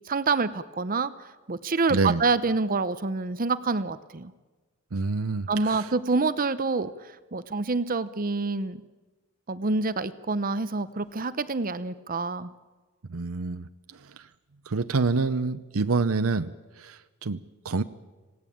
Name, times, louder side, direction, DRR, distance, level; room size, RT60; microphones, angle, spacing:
voice 1, 0.1-4.3 5.5-8.8 9.5-12.5, right 3 dB, 40° right, 14 dB, 0.8 m, -27 dB
voice 2, 1.9-2.2 4.9-5.9 13.1-13.7 14.2-14.3 14.7-17.8, right 3 dB, 85° right, 10 dB, 0.8 m, -27 dB
27.0 x 18.5 x 8.7 m, 1.3 s
head